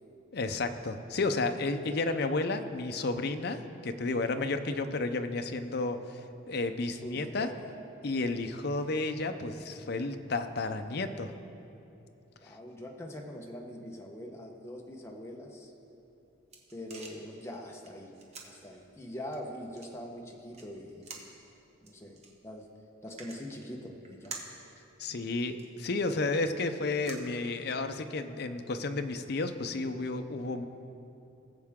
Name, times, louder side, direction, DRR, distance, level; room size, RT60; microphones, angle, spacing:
voice 1, 0.3-7.5 8.0-11.3 25.0-30.7, left 3 dB, 55° left, 8 dB, 0.6 m, -32 dB
voice 2, 6.9-7.7 12.4-15.7 16.7-18.1 18.4-21.1 21.8-22.7 23.0-24.4, left 1 dB, 15° left, 0 dB, 1.0 m, -43 dB
sound 1, 15.9-28.0, right 4 dB, 35° right, 1.2 m, -51 dB
19.0 x 7.5 x 3.6 m, 2.8 s
head